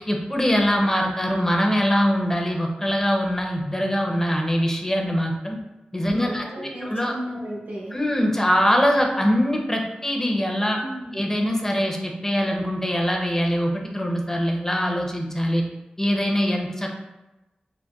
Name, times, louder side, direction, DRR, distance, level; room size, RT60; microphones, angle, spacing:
voice 1, 0.1-5.6 5.9-7.1 7.9-10.8 11.1-15.6 16.0-16.9, equal, 15° left, 1 dB, 0.5 m, -23 dB
voice 2, 6.1-8.0 10.8-11.2, equal, 85° right, -5 dB, 1.0 m, -34 dB
3.8 x 2.1 x 2.3 m, 1.0 s
cardioid pair, 50°, 3 cm